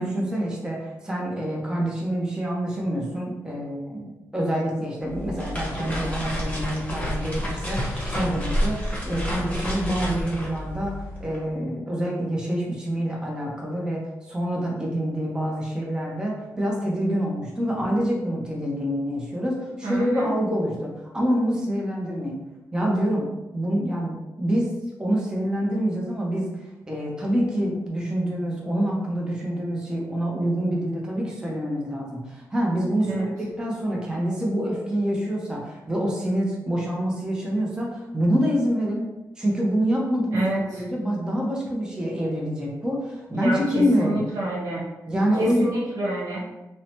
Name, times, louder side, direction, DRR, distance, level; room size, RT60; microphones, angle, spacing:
voice 1, 0.0-22.4 22.7-23.3 23.5-24.7 25.0-39.1 39.4-40.5 40.7-44.2 45.1-45.7, equal, 10° right, -3 dB, 0.6 m, -26 dB
sound 1, 5.1-11.4, equal, 20° left, 0.9 m, -29 dB
voice 2, 19.8-20.3 33.1-33.3 40.3-40.8 43.3-44.8 45.4-46.5, right 1 dB, 70° right, -5 dB, 1.0 m, -28 dB
2.7 x 2.1 x 2.9 m, 1.0 s
cardioid pair, 95°, 6 cm